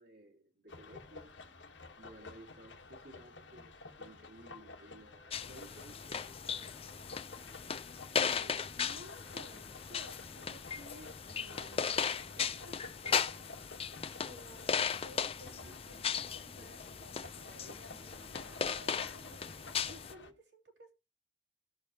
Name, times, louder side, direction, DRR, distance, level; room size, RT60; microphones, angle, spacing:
voice 1, 0.0-1.5 2.0-7.2 15.6-16.3 16.6-16.8, right 1 dB, 65° right, 2.1 m, -57 dB
sound 1, 0.7-20.3, left 3 dB, 85° left, 1.4 m, -52 dB
sound 2, 5.3-20.1, left 6 dB, 30° left, 0.5 m, -37 dB
voice 2, 8.1-11.9 12.3-13.5 14.2-20.9, equal, 80° right, 2.9 m, -56 dB
18.0 x 6.8 x 2.9 m
head